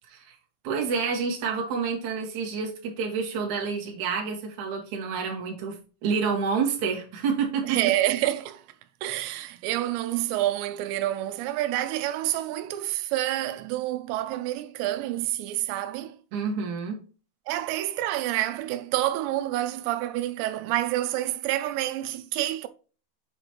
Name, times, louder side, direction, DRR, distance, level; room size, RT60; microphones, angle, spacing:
voice 1, 0.6-5.8 6.0-7.8 16.3-17.0, right 5 dB, 55° right, 2.7 m, -28 dB
voice 2, 7.7-8.6 9.0-16.1 17.5-22.7, right 14 dB, 90° right, 2.8 m, -28 dB
8.0 x 5.1 x 3.1 m
omnidirectional pair, 4.9 m